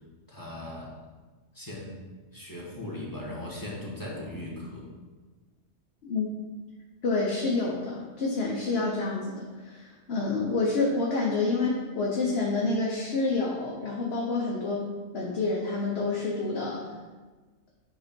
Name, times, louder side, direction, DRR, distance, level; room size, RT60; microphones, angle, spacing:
voice 1, 0.3-0.9 1.5-1.9 2.3-4.9, left 1 dB, 15° left, -5 dB, 1.4 m, -38 dB
voice 2, 7.0-14.8 15.1-16.8, left 3 dB, 60° left, -3 dB, 1.1 m, -28 dB
8.5 x 2.9 x 5.1 m, 1.3 s
omnidirectional pair, 1.2 m